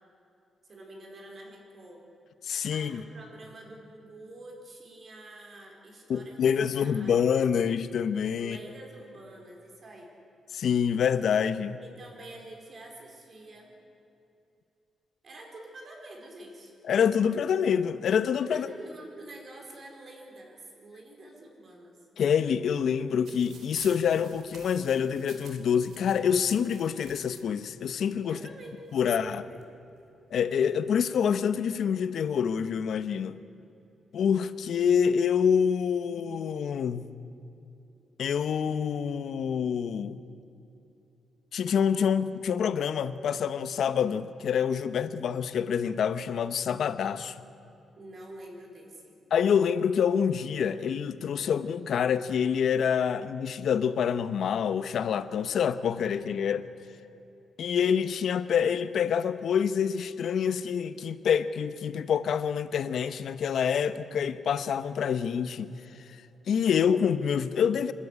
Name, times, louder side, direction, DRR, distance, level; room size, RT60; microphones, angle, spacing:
voice 1, 0.7-2.0 2.7-7.4 8.4-10.1 11.8-13.8 15.2-16.7 18.5-22.0 28.3-28.8 29.0-29.6 48.0-49.2, right 2 dB, 40° right, 4.3 m, -47 dB
voice 2, 2.4-3.0 6.1-8.6 10.5-11.8 16.9-18.7 22.2-28.4 28.9-29.4 30.3-33.4 34.1-37.1 38.2-40.2 41.5-47.4 49.3-56.6 57.6-65.7 66.5-67.9, left 7 dB, 65° left, 0.9 m, -26 dB
sound 1, 23.3-27.4 28.3-28.4 28.7-29.6 30.3-30.7, right 5 dB, 70° right, 2.8 m, -51 dB
26.5 x 13.0 x 10.0 m
cardioid pair, 140°, 0 cm